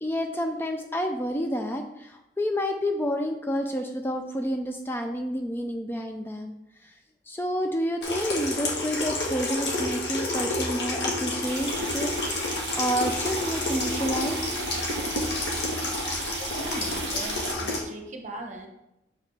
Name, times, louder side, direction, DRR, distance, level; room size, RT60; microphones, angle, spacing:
voice 1, 0.0-6.5 6.8-6.9 7.3-14.6, equal, 10° left, 4 dB, 0.4 m, -29 dB
Water tap faucet / Sink (filling or washing), 8.0-17.8, left 2 dB, 60° left, 1.5 m, -29 dB
sound 1, 11.4-17.5, right 8 dB, 60° right, 0.4 m, -38 dB
voice 2, 16.5-18.7, right 1 dB, 40° right, 3 dB, 0.9 m, -39 dB
6.7 x 4.9 x 3.3 m, 0.88 s
head